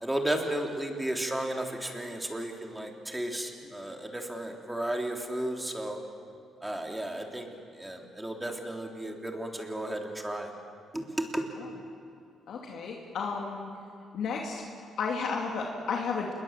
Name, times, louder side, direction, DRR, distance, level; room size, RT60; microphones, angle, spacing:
voice 1, 0.0-6.0 6.6-7.5 7.8-10.5 10.9-11.4, right 1 dB, 10° right, 1 dB, 3.5 m, -33 dB
voice 2, 12.5-13.7 14.1-14.7 15.0-16.3, left 5 dB, 70° left, -1 dB, 2.6 m, -33 dB
28.0 x 21.5 x 7.6 m, 2.3 s
cardioid pair, 90°, 0 cm